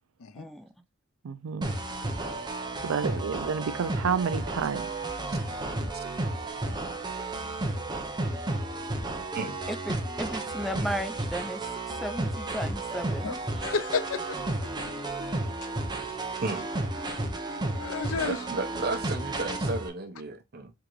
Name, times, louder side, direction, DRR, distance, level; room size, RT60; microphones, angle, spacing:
voice 1, 0.4-0.7 9.7-13.4, equal, ahead, 0.3 m, -35 dB
voice 2, 1.2-1.7 2.8-4.9, right 6 dB, 90° right, 0.4 m, -29 dB
sound 1, 1.6-19.9, right 2 dB, 20° right, 0.7 m, -32 dB
voice 3, 13.6-14.7 16.1-16.2 17.8-18.4, left 5 dB, 85° left, 0.5 m, -32 dB
voice 4, 18.2-20.7, right 2 dB, 50° right, 0.8 m, -33 dB
3.8 x 3.6 x 3.0 m
head